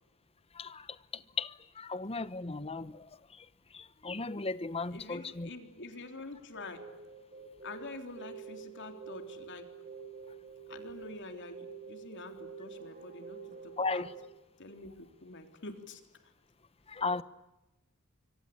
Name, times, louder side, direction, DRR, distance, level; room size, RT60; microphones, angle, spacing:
voice 1, 1.4-3.1 3.7-5.5 13.8-14.1 16.9-17.2, left 3 dB, 25° left, 1.0 m, -35 dB
voice 2, 4.9-6.9 7.6-9.7 10.7-14.1 14.6-16.3, left 2 dB, 55° left, 3.5 m, -47 dB
sound 1, 6.5-14.3, right 5 dB, 35° right, 6.5 m, -48 dB
25.5 x 24.5 x 8.6 m
head